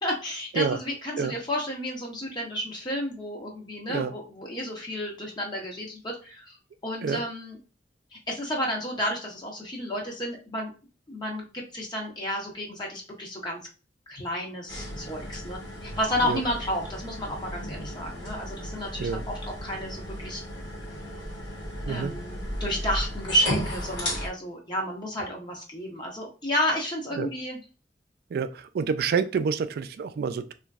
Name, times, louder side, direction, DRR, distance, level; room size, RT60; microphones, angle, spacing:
voice 1, 0.0-6.6 6.8-7.6 8.1-10.7 11.1-13.6 14.1-20.4 21.9-27.6, equal, 25° left, -1 dB, 0.7 m, -31 dB
sound 1, 14.7-24.3, equal, 70° left, 1.2 m, -35 dB
voice 2, 28.3-30.5, right 5 dB, 60° right, 12 dB, 0.3 m, -28 dB
3.0 x 2.5 x 2.3 m, 0.33 s
head